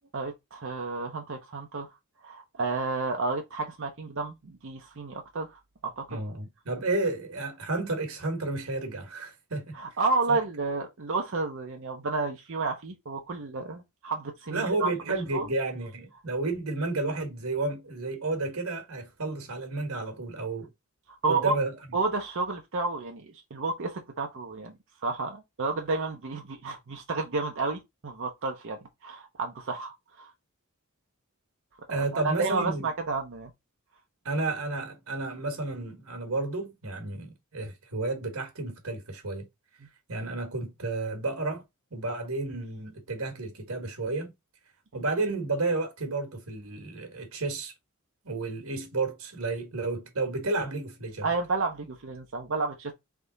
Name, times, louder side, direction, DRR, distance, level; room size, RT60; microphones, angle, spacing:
voice 1, 0.1-1.9 2.2-6.2 9.7-14.9 15.3-15.5 21.1-21.5 21.9-24.8 25.0-30.3 31.9-33.5 44.9-45.0 51.2-52.9, right 3 dB, 60° right, 0.7 m, -31 dB
voice 2, 6.1-9.8 10.3-10.4 14.5-20.7 21.3-21.7 31.9-32.9 34.2-39.4 40.1-41.6 41.9-44.3 44.9-47.7 48.2-51.3, right 3 dB, 75° right, 1.5 m, -31 dB
3.6 x 3.3 x 3.8 m
head